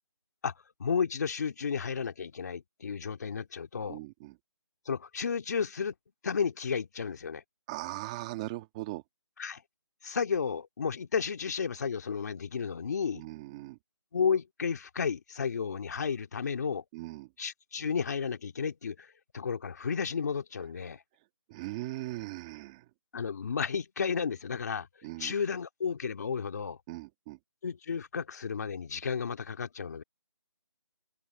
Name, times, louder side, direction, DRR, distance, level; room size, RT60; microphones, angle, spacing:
voice 1, 0.8-4.0 4.9-5.9 6.2-7.4 9.4-9.6 10.0-13.2 14.1-16.8 17.4-19.1 19.3-21.0 23.1-24.9 25.2-26.8 27.6-30.0, left 6 dB, 35° left, 2.3 m, -32 dB
voice 2, 3.9-4.3 7.7-9.0 13.1-13.8 16.9-17.3 21.5-22.8 25.0-25.3 26.9-27.4, right 19 dB, 10° right, 1.7 m, -39 dB
open air
figure-of-eight pair, 170°, 16 cm